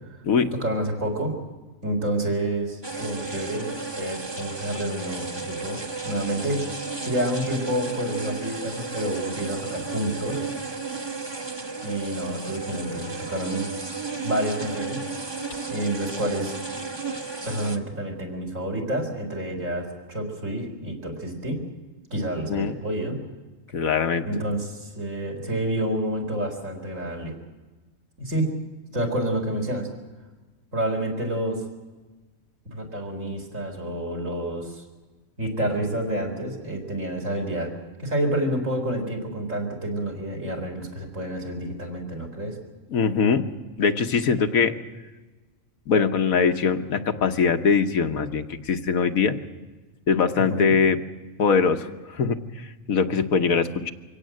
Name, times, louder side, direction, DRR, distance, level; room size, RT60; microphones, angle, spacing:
voice 1, 0.5-1.3 1.8-6.6 7.0-10.4 11.8-13.7 14.2-15.0 15.7-16.5 17.4-21.6 22.1-23.2 24.2-27.3 28.2-28.5 28.9-29.9 30.7-31.6 32.7-34.8 35.4-37.7 38.0-42.6 50.4-50.7, right 1 dB, 65° right, 1 dB, 4.3 m, -28 dB
sound 1, 2.8-17.8, right 4 dB, 20° right, 1.1 m, -33 dB
voice 2, 23.7-24.3 42.9-43.5 43.8-44.7 45.9-49.4 50.1-51.0 51.4-53.9, left 5 dB, 80° left, 7 dB, 1.6 m, -22 dB
24.0 x 17.0 x 7.7 m, 1.2 s
omnidirectional pair, 1.5 m